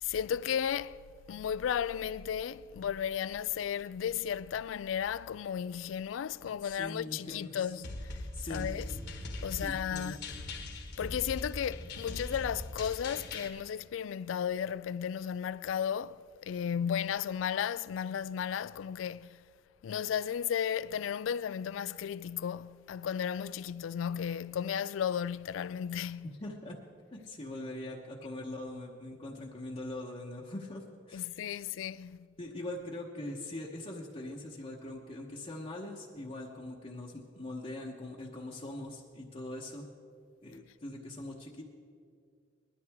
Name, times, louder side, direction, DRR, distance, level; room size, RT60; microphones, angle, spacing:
voice 1, 0.0-1.0 1.3-8.2 8.5-8.9 9.4-10.2 11.0-19.4 19.8-26.4 31.1-32.2, left 8 dB, 85° left, 0.3 m, -34 dB
voice 2, 6.8-7.7 8.3-8.7 9.5-10.2 26.2-26.8 27.1-31.6 32.4-39.9 40.4-41.6, left 1 dB, 30° left, 1.0 m, -42 dB
sound 1, 7.8-13.5, left 2 dB, 60° left, 1.5 m, -41 dB
20.0 x 13.0 x 3.5 m
head